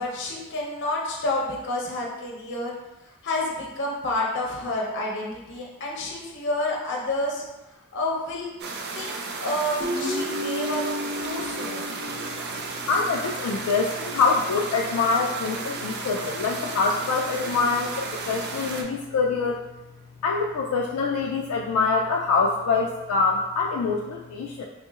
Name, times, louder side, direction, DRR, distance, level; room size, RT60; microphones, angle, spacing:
voice 1, 0.0-2.7 3.2-7.4 7.9-8.5 8.9-10.8 11.2-11.9, left 1 dB, 55° left, -2 dB, 0.7 m, -29 dB
sound 1, 8.6-18.8, right 3 dB, 50° right, 0.4 m, -34 dB
Guitar, 9.8-13.1, equal, 35° right, 0.8 m, -32 dB
voice 2, 12.9-19.6 20.2-24.7, left 4 dB, 85° left, 0 dB, 0.3 m, -25 dB
3.7 x 2.8 x 2.4 m, 1.0 s
head